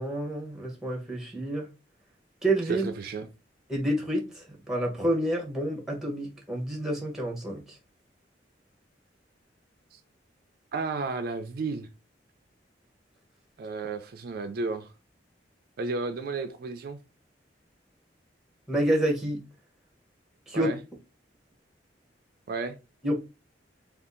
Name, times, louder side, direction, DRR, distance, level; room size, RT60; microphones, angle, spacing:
voice 1, 0.0-1.7 2.4-2.9 3.7-7.8 18.7-19.4 20.5-20.7 23.0-23.1, right 1 dB, 5° right, 0.9 m, -28 dB
voice 2, 2.7-3.3 9.9-10.0 10.7-11.9 13.6-14.9 15.8-17.0 20.5-20.8 22.5-22.8, right 3 dB, 60° right, 0.4 m, -32 dB
2.7 x 2.4 x 3.7 m
head